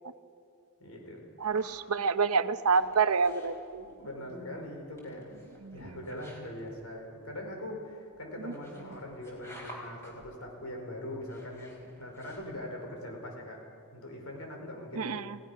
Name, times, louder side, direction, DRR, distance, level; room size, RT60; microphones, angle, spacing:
voice 1, 0.8-1.2 3.7-5.3 5.7-13.6 13.9-15.2, left 1 dB, 75° left, 1 dB, 4.7 m, -42 dB
sound 1, 1.4-12.9, equal, 10° left, 4.1 m, -54 dB
voice 2, 1.4-3.8 5.6-6.0 8.5-8.6 15.0-15.4, right 5 dB, 75° right, 12 dB, 0.8 m, -28 dB
29.5 x 17.0 x 5.7 m, 2.4 s
head